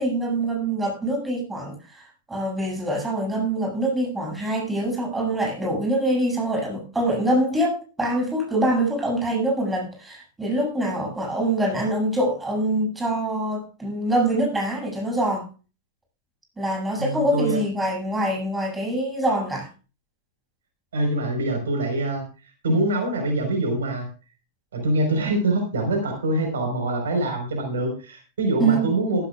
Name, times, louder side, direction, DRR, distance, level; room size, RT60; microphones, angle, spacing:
voice 1, 0.0-2.0 2.3-15.4 16.6-19.7 28.6-28.8, right 1 dB, 10° right, -1 dB, 7.6 m, -24 dB
voice 2, 17.0-17.6 20.9-22.2 22.6-24.1 24.7-29.3, right 1 dB, 65° right, 3 dB, 4.7 m, -24 dB
14.5 x 14.5 x 2.5 m, 0.34 s
figure-of-eight pair, 90°, 0 cm